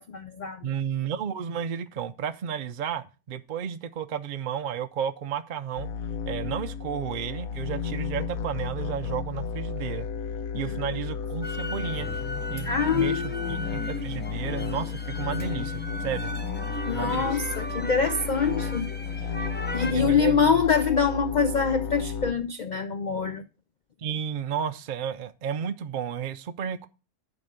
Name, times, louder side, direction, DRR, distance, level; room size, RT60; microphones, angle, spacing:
voice 1, 0.0-0.7 10.5-10.9 12.6-13.6 16.9-18.9 19.7-23.4, left 6 dB, 70° left, 0.4 m, -25 dB
voice 2, 0.6-5.9 6.3-10.1 10.5-12.1 12.5-16.3 16.9-17.4 19.9-20.4 24.0-26.9, right 8 dB, 60° right, 0.5 m, -32 dB
sound 1, 5.8-22.3, left 6 dB, 85° left, 1.2 m, -33 dB
sound 2, 11.4-19.9, left 1 dB, 10° left, 0.6 m, -37 dB
11.0 x 4.3 x 6.7 m
omnidirectional pair, 1.5 m